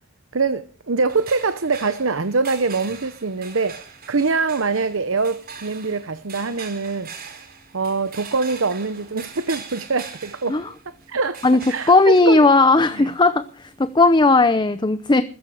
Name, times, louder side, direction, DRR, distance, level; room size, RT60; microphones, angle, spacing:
voice 1, 0.3-7.4 7.7-10.6 11.1-11.4 11.7-12.4 12.9-13.1, right 4 dB, 70° right, 0.9 m, -24 dB
sound 1, 1.1-14.3, right 6 dB, 45° right, 4.4 m, -42 dB
voice 2, 11.9-15.2, left 3 dB, 20° left, 0.7 m, -16 dB
15.0 x 14.5 x 4.9 m
head